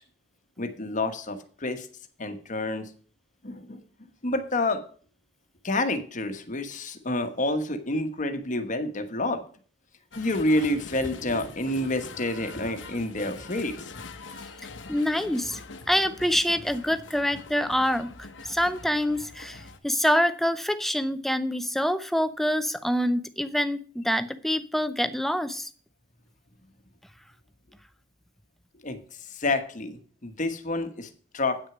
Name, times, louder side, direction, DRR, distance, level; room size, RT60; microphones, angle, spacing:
voice 1, 0.6-1.9 2.2-2.9 3.4-3.8 4.2-4.8 5.6-9.4 10.2-13.9 28.8-31.6, left 2 dB, 40° left, 8 dB, 1.2 m, -29 dB
sound 1, 10.1-19.8, left 3 dB, 75° left, 1.0 m, -44 dB
voice 2, 14.9-15.6 15.9-25.7, equal, ahead, 11 dB, 0.5 m, -26 dB
8.9 x 6.3 x 6.0 m, 0.43 s
head